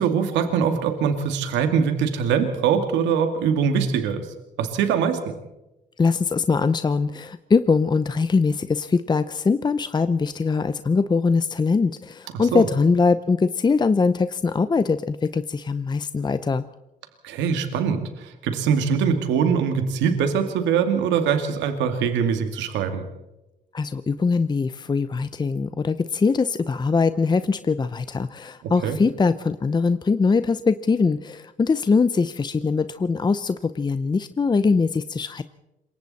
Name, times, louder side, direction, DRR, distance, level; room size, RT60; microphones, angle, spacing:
voice 1, 0.0-5.2 12.5-12.6 17.2-23.0 28.6-29.0, right 7 dB, 90° right, 6 dB, 2.3 m, -23 dB
voice 2, 6.0-16.7 23.7-35.4, left 4 dB, 25° left, 12 dB, 0.7 m, -22 dB
27.0 x 23.0 x 4.2 m, 0.97 s
cardioid pair, 95°, 18 cm